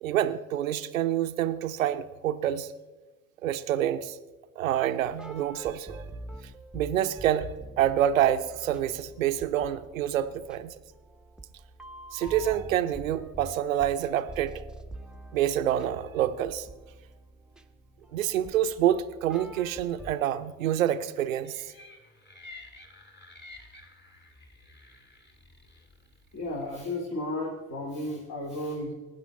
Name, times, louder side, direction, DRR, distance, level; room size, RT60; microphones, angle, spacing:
voice 1, 0.0-2.7 3.4-4.2 4.6-6.0 6.7-10.7 12.1-14.6 15.3-16.7 18.1-21.6, right 11 dB, 80° right, 0.6 m, -27 dB
sound 1, 5.1-20.2, right 2 dB, ahead, 0.8 m, -45 dB
sound 2, 21.4-26.9, left 2 dB, 25° left, 2.2 m, -51 dB
voice 2, 26.3-28.9, left 1 dB, 45° left, 2.6 m, -33 dB
19.0 x 9.4 x 3.5 m
figure-of-eight pair, 50°, 39 cm